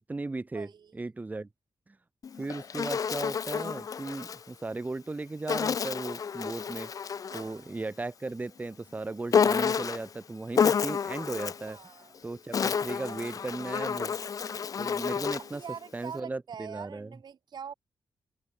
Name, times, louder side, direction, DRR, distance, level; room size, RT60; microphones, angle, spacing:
voice 1, 0.0-1.5 2.4-6.9 7.3-11.8 12.2-14.1 14.5-15.6 15.9-17.1, right 3 dB, 20° right, 1.3 m, -36 dB
voice 2, 0.5-0.9 7.3-7.8 11.7-12.3 12.7-13.6 15.4-17.7, right 7 dB, 65° right, 1.7 m, -45 dB
Insect, 2.2-4.4 5.5-7.6 9.3-10.1 10.5-11.7 12.3-15.6, left 6 dB, 45° left, 0.4 m, -29 dB
open air
wide cardioid pair, 135°, 8 cm